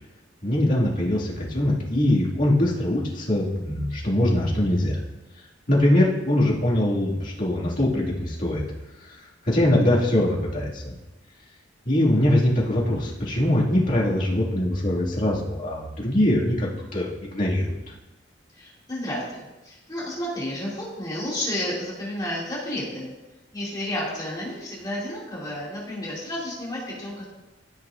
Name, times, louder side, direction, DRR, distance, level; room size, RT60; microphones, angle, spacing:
voice 1, 0.4-5.0 5.7-8.6 9.5-10.9 11.9-17.8, left 1 dB, 45° left, -5 dB, 2.1 m, -22 dB
voice 2, 18.5-23.1 23.5-27.3, left 1 dB, 20° left, -7 dB, 2.4 m, -31 dB
14.0 x 6.2 x 2.5 m, 1.0 s
head